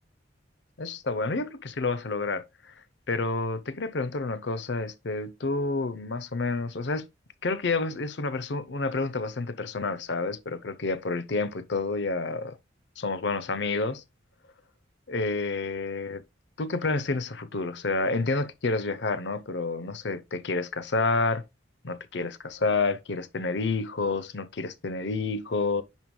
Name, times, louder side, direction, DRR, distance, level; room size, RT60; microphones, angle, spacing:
voice 1, 0.8-2.4 3.1-7.1 7.4-12.6 13.0-14.0 15.1-16.2 16.6-21.5 21.8-25.8, left 3 dB, 65° left, 0.7 m, -29 dB
9.1 x 5.3 x 2.2 m
head